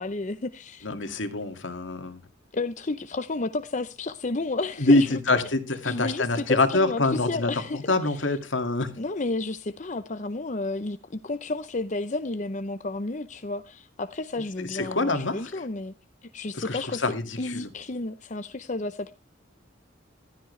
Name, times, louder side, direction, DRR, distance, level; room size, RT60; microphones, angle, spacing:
voice 1, 0.0-0.9 2.5-5.2 5.8-8.3 9.0-15.9 16.2-17.0 17.4-19.1, left 2 dB, 40° left, 0.7 m, -31 dB
voice 2, 0.8-2.2 4.8-8.9 14.6-15.6 16.5-17.6, left 2 dB, 80° left, 2.2 m, -25 dB
15.0 x 13.0 x 3.2 m
head